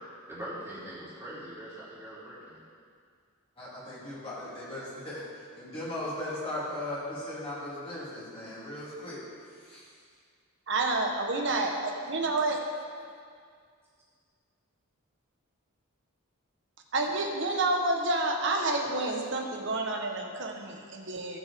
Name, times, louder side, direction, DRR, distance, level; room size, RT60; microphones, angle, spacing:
voice 1, 0.3-2.6, right 1 dB, 10° right, -10 dB, 3.0 m, -42 dB
voice 2, 3.6-5.2 5.5-9.2 9.6-9.9, left 1 dB, 25° left, -11 dB, 3.0 m, -37 dB
voice 3, 10.7-12.6 16.9-21.4, right 2 dB, 55° right, 2 dB, 1.1 m, -29 dB
17.0 x 6.1 x 3.6 m, 2.1 s
head